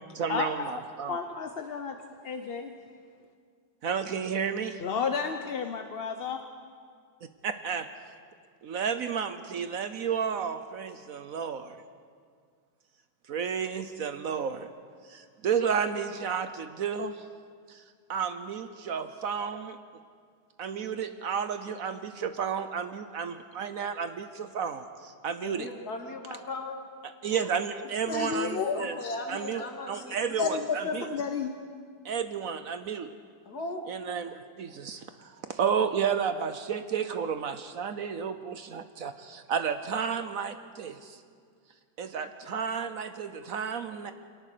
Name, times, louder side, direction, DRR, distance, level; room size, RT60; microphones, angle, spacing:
voice 1, 0.1-1.2 3.8-4.8 7.4-8.1 8.6-11.8 13.3-14.7 15.0-17.3 17.7-17.8 18.1-19.8 20.6-25.7 27.0-29.0 29.3-31.1 32.0-33.1 33.9-41.2 42.0-44.1, right 7 dB, 60° right, 10 dB, 1.1 m, -32 dB
voice 2, 1.1-2.7 4.8-6.4 28.0-29.2 29.9-30.0 30.4-31.5, left 6 dB, 45° left, 6 dB, 0.8 m, -32 dB
voice 3, 25.4-26.8 28.7-30.3 33.5-33.9, left 2 dB, 65° left, 3 dB, 2.5 m, -37 dB
23.5 x 18.5 x 6.8 m, 2.1 s
omnidirectional pair, 1.8 m